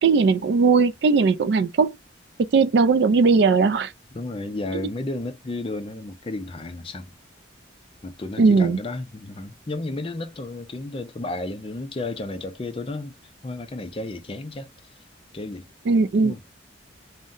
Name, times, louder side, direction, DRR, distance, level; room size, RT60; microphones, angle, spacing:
voice 1, 0.0-1.9 2.5-3.9 8.4-8.8 15.9-16.4, right 4 dB, 55° right, 0.3 m, -18 dB
voice 2, 4.1-7.1 8.0-13.2 13.4-14.7 15.3-15.7 16.2-16.4, left 2 dB, 25° left, 0.4 m, -32 dB
2.6 x 2.1 x 3.6 m
head